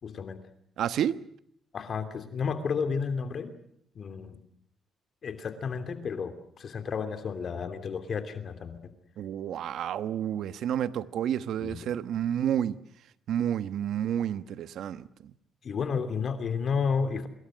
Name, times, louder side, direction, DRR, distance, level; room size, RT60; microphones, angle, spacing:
voice 1, 0.0-0.4 1.7-3.5 3.9-4.4 5.2-8.8 11.6-11.8 15.6-17.3, left 5 dB, 55° left, 2.9 m, -31 dB
voice 2, 0.8-1.2 9.2-12.8 13.3-15.3, right 10 dB, 75° right, 1.2 m, -30 dB
27.5 x 22.0 x 6.4 m
cardioid pair, 90°, 0 cm